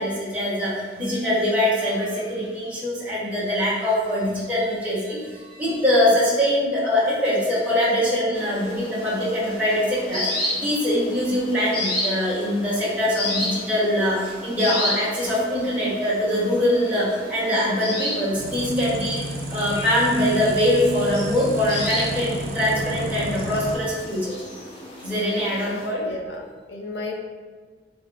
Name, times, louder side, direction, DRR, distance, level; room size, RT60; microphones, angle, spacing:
voice 1, 0.0-19.2 19.5-24.4 25.0-26.1, left 1 dB, 10° right, -10 dB, 1.2 m, -23 dB
sound 1, 8.3-25.9, left 1 dB, 30° left, 0.9 m, -33 dB
sound 2, 18.4-23.8, right 1 dB, 55° right, 0.5 m, -31 dB
voice 2, 26.0-27.2, left 2 dB, 75° left, 1 dB, 0.6 m, -33 dB
3.8 x 3.5 x 2.5 m, 1.5 s
head